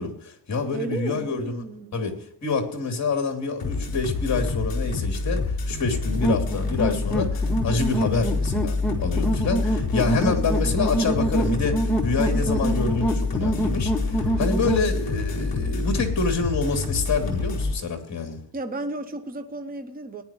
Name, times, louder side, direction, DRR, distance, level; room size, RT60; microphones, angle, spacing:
voice 1, 0.0-1.6 1.9-2.1 2.4-18.4, left 4 dB, 40° left, 2.9 m, -27 dB
voice 2, 0.7-2.0 12.2-12.7 18.5-20.2, right 2 dB, 20° right, 0.9 m, -34 dB
sound 1, 3.6-17.7, left 3 dB, 55° left, 4.4 m, -27 dB
sound 2, 6.2-14.9, right 1 dB, 5° left, 1.6 m, -26 dB
19.0 x 10.5 x 3.0 m
cardioid pair, 145°, 44 cm